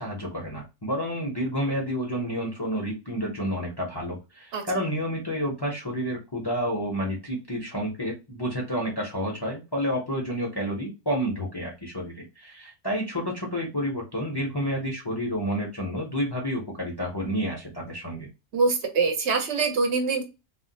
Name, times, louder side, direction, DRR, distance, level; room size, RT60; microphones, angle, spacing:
voice 1, 0.0-18.3, equal, 25° left, -1 dB, 0.6 m, -30 dB
voice 2, 18.5-20.2, right 4 dB, 65° right, 4 dB, 1.0 m, -24 dB
2.5 x 2.0 x 3.8 m, 0.26 s
omnidirectional pair, 1.3 m